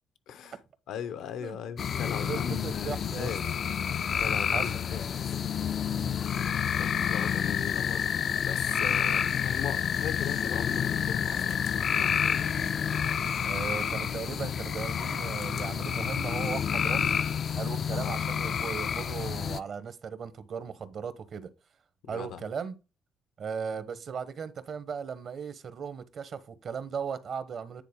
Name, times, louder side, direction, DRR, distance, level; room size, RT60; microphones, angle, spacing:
voice 1, 0.3-0.6 0.9-3.4 4.2-5.2 6.8-8.1 8.4-12.4 17.8-18.2 22.0-22.4, left 8 dB, 90° left, 0.8 m, -39 dB
sound 1, 1.8-19.6, left 8 dB, 55° left, 0.3 m, -29 dB
voice 2, 2.2-3.3 4.5-4.7 5.9-6.2 8.7-9.0 13.5-17.2 17.6-21.5 22.1-22.7 23.4-27.8, right 6 dB, 55° right, 0.9 m, -37 dB
9.3 x 4.0 x 3.6 m
cardioid pair, 105°, 0 cm